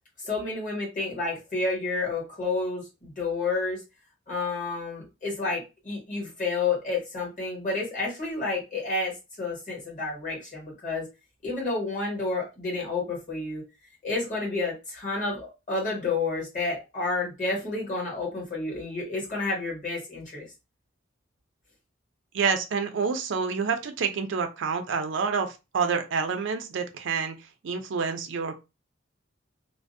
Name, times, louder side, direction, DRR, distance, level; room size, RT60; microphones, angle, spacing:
voice 1, 0.2-3.8 4.3-11.1 11.4-13.6 14.0-20.4, left 3 dB, 45° left, -2 dB, 1.3 m, -30 dB
voice 2, 22.3-27.4 27.6-28.6, right 5 dB, 65° right, 6 dB, 0.4 m, -28 dB
2.5 x 2.0 x 2.5 m, 0.26 s
head